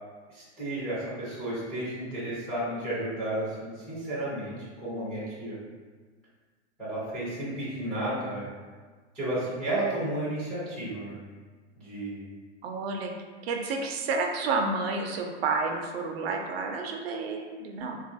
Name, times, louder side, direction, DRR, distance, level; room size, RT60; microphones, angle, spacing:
voice 1, 0.3-5.6 6.8-8.5 9.1-11.2 11.8-12.2, right 1 dB, 5° left, -12 dB, 0.4 m, -32 dB
voice 2, 12.6-13.1 13.4-18.0, right 4 dB, 60° right, 3 dB, 0.4 m, -30 dB
3.6 x 2.3 x 2.5 m, 1.5 s
supercardioid pair, 165°, 36 cm